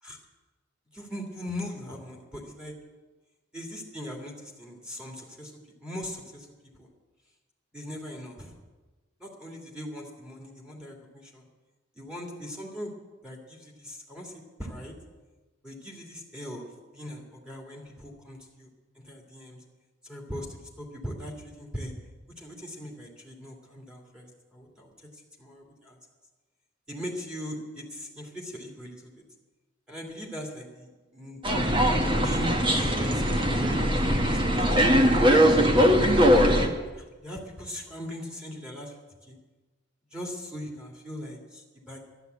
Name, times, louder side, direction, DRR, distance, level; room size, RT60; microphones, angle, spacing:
voice 1, 0.9-2.7 3.5-6.5 6.8-6.9 7.7-8.5 9.2-11.5 12.0-12.9 13.2-14.3 14.6-14.9 15.6-16.6 16.9-18.7 19.0-19.6 20.0-20.5 20.8-21.9 22.4-26.0 26.9-29.1 29.9-31.4 32.0-36.1 36.9-38.9 39.2-39.4 40.1-42.1, equal, 5° right, -1 dB, 2.5 m, -40 dB
sound 1, 31.4-36.7, equal, 25° right, 1.4 m, -21 dB
12.0 x 11.5 x 8.1 m, 1.3 s
head